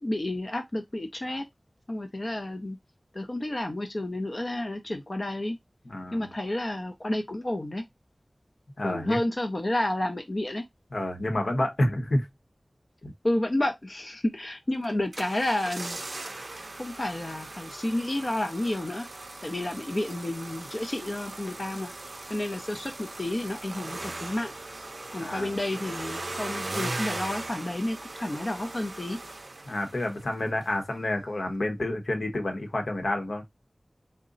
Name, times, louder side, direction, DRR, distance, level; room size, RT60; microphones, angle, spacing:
voice 1, 0.0-1.5 1.9-2.8 3.1-5.6 6.1-7.8 8.8-10.6 13.2-16.0 16.7-19.1 19.4-21.9 22.3-24.5 25.1-29.2, left 1 dB, 45° left, 0.6 m, -30 dB
voice 2, 5.8-6.3 8.8-9.2 10.9-12.3 13.0-13.1 25.2-25.6 29.6-33.4, left 1 dB, 80° left, 1.0 m, -29 dB
sound 1, 14.8-30.3 30.6-30.7, right 2 dB, 60° right, 0.5 m, -39 dB
3.9 x 2.2 x 3.8 m
wide cardioid pair, 65°, 0 cm